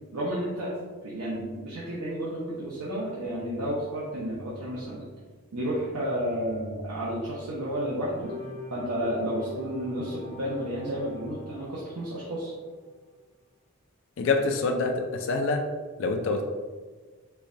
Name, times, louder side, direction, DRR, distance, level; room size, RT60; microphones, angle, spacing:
voice 1, 0.1-0.7 1.0-5.1 5.5-8.3 8.7-12.5, equal, 90° right, -7 dB, 0.7 m, -31 dB
sound 1, 8.2-12.8, left 2 dB, 5° left, 0.6 m, -44 dB
voice 2, 14.2-15.6 16.0-16.4, left 3 dB, 55° left, 3 dB, 0.3 m, -26 dB
4.5 x 2.2 x 2.5 m, 1.4 s
head